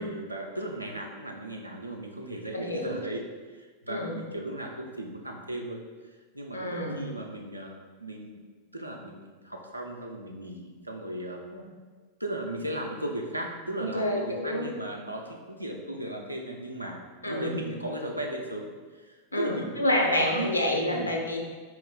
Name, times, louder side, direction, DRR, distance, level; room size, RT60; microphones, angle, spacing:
voice 1, 0.0-8.4 8.7-11.4 12.2-19.8 20.0-20.5 20.9-21.2, right 1 dB, 85° right, 0 dB, 0.5 m, -36 dB
voice 2, 2.5-3.0 3.9-4.1 6.5-7.0 11.5-11.6 13.9-14.7 17.2-17.6 19.3-21.4, left 1 dB, 85° left, 1 dB, 0.6 m, -28 dB
4.4 x 3.0 x 3.6 m, 1.4 s
figure-of-eight pair, 90°, 0 cm